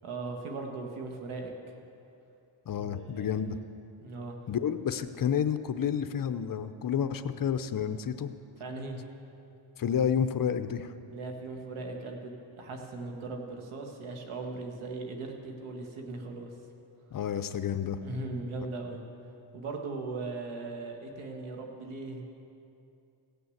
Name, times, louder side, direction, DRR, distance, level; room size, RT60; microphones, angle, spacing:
voice 1, 0.0-1.7 2.8-3.6 4.0-4.4 8.6-9.0 11.1-16.5 18.0-19.0 19.5-22.2, right 3 dB, 85° right, 2 dB, 1.8 m, -39 dB
voice 2, 2.7-3.6 4.5-8.3 9.8-10.9 17.1-18.0, left 8 dB, 45° left, 10 dB, 0.7 m, -30 dB
16.5 x 6.9 x 7.9 m, 2.7 s
cardioid pair, 95°, 48 cm